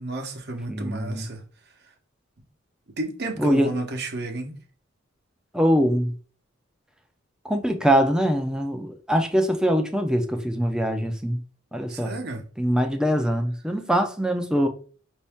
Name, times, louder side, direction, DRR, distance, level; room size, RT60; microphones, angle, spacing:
voice 1, 0.0-1.4 3.0-4.6 11.9-12.4, right 2 dB, 55° right, 0.9 m, -31 dB
voice 2, 0.7-1.3 3.4-3.7 5.5-6.1 7.4-11.4 11.7-12.1 12.6-14.7, equal, 5° right, 0.5 m, -23 dB
5.4 x 2.7 x 3.5 m
head